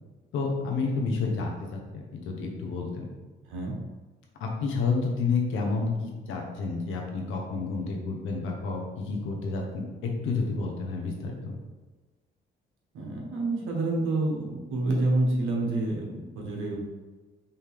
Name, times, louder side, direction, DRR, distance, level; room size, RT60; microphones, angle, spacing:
voice 1, 0.3-3.1 4.4-11.6, left 4 dB, 85° left, 0 dB, 1.0 m, -30 dB
voice 2, 12.9-16.8, right 2 dB, 85° right, -1 dB, 1.2 m, -28 dB
5.5 x 2.8 x 3.4 m, 1.3 s
cardioid pair, 90°, 20 cm